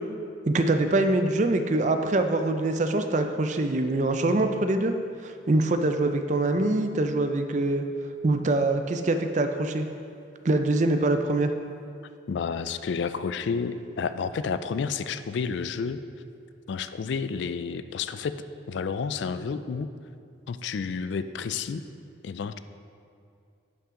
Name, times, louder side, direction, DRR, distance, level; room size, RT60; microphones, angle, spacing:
voice 1, 0.5-4.9 5.2-7.9 8.2-9.9 10.4-11.5, right 2 dB, 40° right, 7 dB, 0.5 m, -24 dB
voice 2, 12.3-16.0 16.7-18.4 18.7-19.9 20.5-21.8 22.2-22.6, left 5 dB, 70° left, 12 dB, 0.3 m, -30 dB
11.0 x 5.8 x 3.7 m, 2.4 s
head